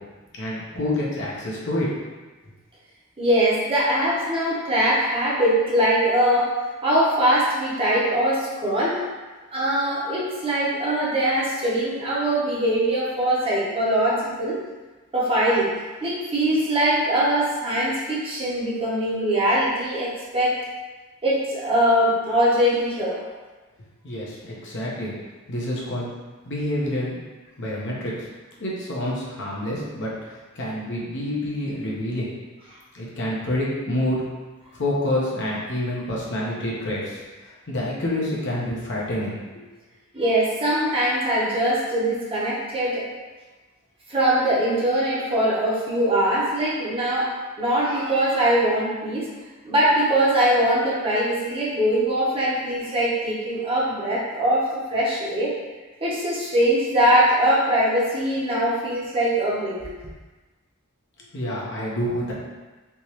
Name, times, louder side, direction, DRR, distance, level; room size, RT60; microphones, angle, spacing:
voice 1, 0.4-1.9 24.0-25.1 25.5-26.1 26.4-27.2 27.6-28.1 28.6-30.1 30.6-32.3 32.9-34.2 34.7-39.4 61.3-62.3, left 1 dB, 60° left, -5 dB, 0.8 m, -27 dB
voice 2, 3.2-6.6 6.8-9.0 9.5-14.6 15.1-15.7 16.0-20.6 21.2-23.3 40.1-43.1 44.1-47.3 47.6-49.3 49.6-55.6 56.0-60.0, right 1 dB, 25° right, -6 dB, 0.8 m, -22 dB
3.4 x 3.0 x 2.9 m, 1.3 s
head